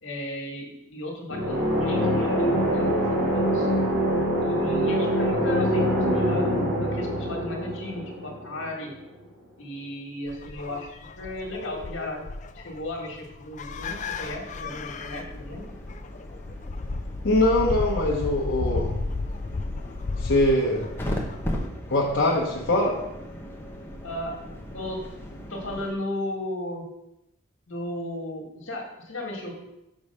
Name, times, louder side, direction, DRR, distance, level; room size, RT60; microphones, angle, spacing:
voice 1, 0.0-3.7 4.4-8.9 9.6-12.3 12.5-15.6 24.0-24.4 24.7-25.0 25.5-26.9 27.7-29.7, left 1 dB, 70° left, 0 dB, 1.8 m, -35 dB
sound 1, 1.3-9.0, equal, 70° right, 3.0 m, -24 dB
sound 2, 10.3-21.7, left 3 dB, 35° left, 0.3 m, -34 dB
sound 3, 14.2-25.9, left 1 dB, 10° left, 0.8 m, -37 dB
voice 2, 17.2-18.9 20.2-20.8 21.9-22.9, left 1 dB, 55° left, -6 dB, 1.1 m, -22 dB
6.2 x 5.1 x 5.4 m, 0.88 s
head